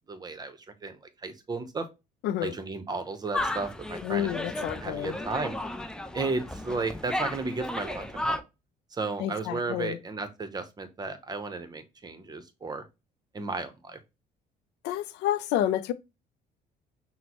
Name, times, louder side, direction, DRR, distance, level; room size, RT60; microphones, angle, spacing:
voice 1, 0.1-1.9 2.4-4.5 4.8-5.5 6.1-8.4 8.9-12.8 13.3-14.0, right 3 dB, 25° right, 0.7 m, -34 dB
voice 2, 2.2-2.5 4.0-5.1 9.2-10.0 14.8-15.9, left 12 dB, 80° left, 0.4 m, -29 dB
sound 1, 3.3-8.4, left 1 dB, 5° left, 0.4 m, -34 dB
5.9 x 2.1 x 2.9 m
cardioid pair, 110°, 17 cm